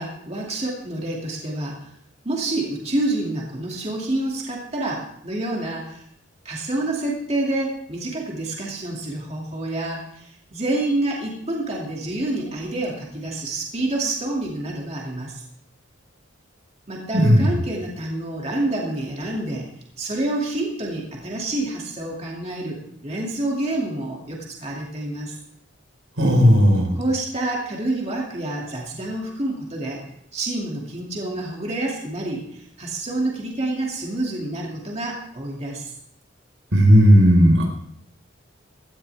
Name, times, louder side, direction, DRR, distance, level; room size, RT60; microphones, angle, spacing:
voice 1, 0.0-1.9 2.2-6.0 6.4-15.4 16.9-19.7 20.0-25.3 26.9-30.0 30.3-35.9, right 2 dB, 35° right, -2 dB, 2.5 m, -28 dB
voice 2, 17.1-17.5 26.2-26.9 36.7-37.7, equal, 90° right, 1 dB, 4.5 m, -14 dB
17.5 x 14.0 x 3.5 m, 0.71 s
head